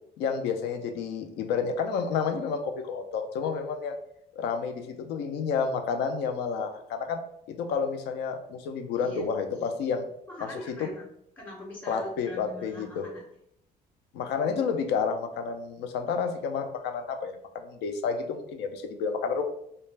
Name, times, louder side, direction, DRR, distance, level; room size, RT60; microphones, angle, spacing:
voice 1, 0.2-4.0 4.4-7.2 7.5-10.1 10.8-10.9 11.9-13.1 14.1-19.4, left 6 dB, 80° left, 7 dB, 0.4 m, -30 dB
voice 2, 8.9-9.3 10.3-11.0 11.4-13.2, left 1 dB, 10° left, -3 dB, 0.6 m, -41 dB
2.4 x 2.2 x 3.2 m, 0.74 s
cardioid pair, 110°, 17 cm